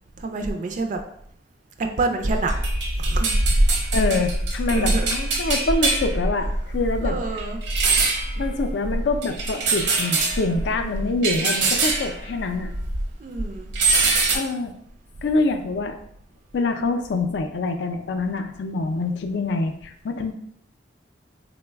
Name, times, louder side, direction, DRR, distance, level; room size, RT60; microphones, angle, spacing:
voice 1, 0.2-1.0 1.8-2.5 3.0-3.3 4.7-5.1 7.0-7.6 10.7-11.2 13.2-13.7, right 3 dB, 45° right, 4 dB, 0.3 m, -28 dB
sound 1, 2.3-13.1 13.4-14.4, right 2 dB, 80° right, 0.7 m, -23 dB
voice 2, 3.9-7.2 8.4-12.7 14.3-14.7 15.2-16.0 16.5-20.3, left 3 dB, 75° left, 6 dB, 0.4 m, -25 dB
3.8 x 2.1 x 3.3 m, 0.70 s
head